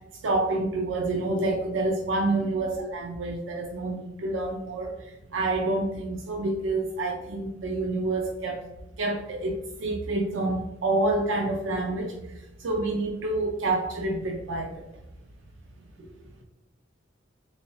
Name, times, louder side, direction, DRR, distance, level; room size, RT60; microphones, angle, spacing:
voice 1, 0.2-4.9 5.3-8.6 9.0-9.5 9.8-12.1 12.6-14.8, right 2 dB, 75° right, 2 dB, 0.5 m, -28 dB
voice 2, 2.3-2.6 16.0-16.4, right 1 dB, 35° right, -5 dB, 1.1 m, -50 dB
3.5 x 2.8 x 3.0 m, 0.96 s
head